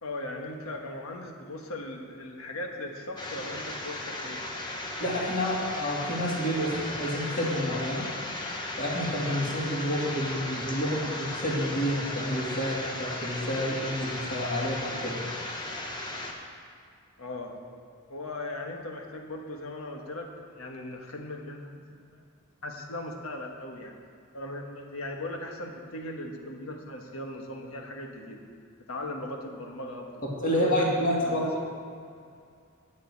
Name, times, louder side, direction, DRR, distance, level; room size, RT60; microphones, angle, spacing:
voice 1, 0.0-4.4 17.2-17.5 18.1-21.8 22.1-22.2 22.6-23.9 24.3-28.4 28.9-30.2 30.5-30.9 31.2-31.5, left 1 dB, 85° left, 2 dB, 1.4 m, -38 dB
sound 1, 3.2-16.3, left 1 dB, 20° left, 1.2 m, -36 dB
voice 2, 5.0-8.1 8.8-15.3 30.2-31.5, equal, 40° left, -4 dB, 2.5 m, -29 dB
9.3 x 6.7 x 8.4 m, 2.3 s
head